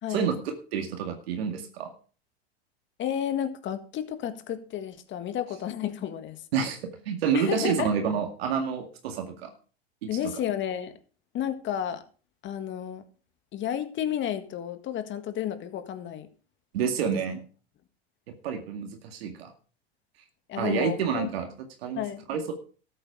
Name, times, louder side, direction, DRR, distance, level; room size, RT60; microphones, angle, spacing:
voice 1, 0.1-1.9 6.5-6.8 7.1-9.5 10.0-10.1 16.7-17.4 18.4-19.5 20.6-21.5 21.8-22.0 22.3-22.5, right 6 dB, 75° right, 4 dB, 2.2 m, -28 dB
voice 2, 3.0-6.4 7.3-7.9 10.1-10.9 11.3-12.0 12.4-13.0 13.5-16.3 20.5-21.3 22.0-22.2, left 10 dB, 35° left, 10 dB, 1.7 m, -31 dB
13.5 x 8.5 x 4.9 m, 0.39 s
hypercardioid pair, 105°, 31 cm